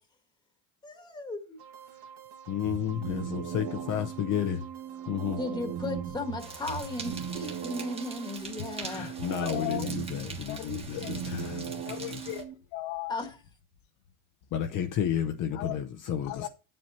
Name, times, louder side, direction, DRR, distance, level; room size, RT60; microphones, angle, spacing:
voice 1, 0.8-1.6 5.3-9.1 13.1-13.3, left 2 dB, 10° left, 1.5 m, -36 dB
sound 1, 1.6-8.4, right 8 dB, 55° right, 1.4 m, -49 dB
voice 2, 2.5-4.6 5.1-5.4 8.8-11.7 14.5-16.5, left 9 dB, 45° left, 0.8 m, -31 dB
sound 2, 2.6-12.5, right 8 dB, 70° right, 1.9 m, -38 dB
sound 3, 6.4-12.4, right 3 dB, 15° right, 1.4 m, -44 dB
voice 3, 9.2-9.9 10.2-11.4 11.8-12.4 12.7-13.1 14.7-14.8 15.5-15.8 16.2-16.5, left 12 dB, 85° left, 1.4 m, -38 dB
10.0 x 7.7 x 4.2 m
cardioid pair, 170°, 46 cm